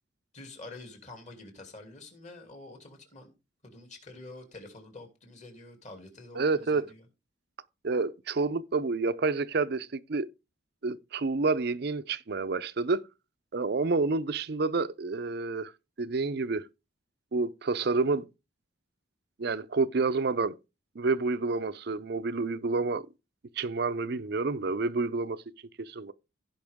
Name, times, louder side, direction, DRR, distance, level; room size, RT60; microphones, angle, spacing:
voice 1, 0.3-3.3 3.6-7.0, left 2 dB, 35° left, 2.7 m, -47 dB
voice 2, 6.3-6.9 7.8-10.3 10.8-13.0 13.5-15.7 16.0-16.7 17.3-18.3 19.4-20.6 21.0-23.0 23.6-25.4 25.8-26.1, right 3 dB, 50° right, 0.5 m, -29 dB
16.0 x 5.4 x 3.5 m
head